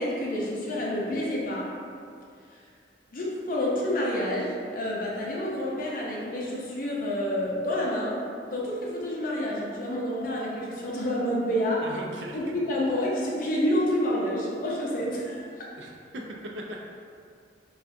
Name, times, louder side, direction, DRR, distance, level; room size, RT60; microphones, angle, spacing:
voice 1, 0.0-1.7 3.1-8.2 8.5-11.8 12.3-15.6, left 1 dB, 50° left, -4 dB, 0.6 m, -28 dB
voice 2, 11.8-12.6 15.8-16.2 16.5-16.8, equal, 80° right, -1 dB, 0.4 m, -39 dB
3.4 x 2.3 x 2.6 m, 2.3 s
head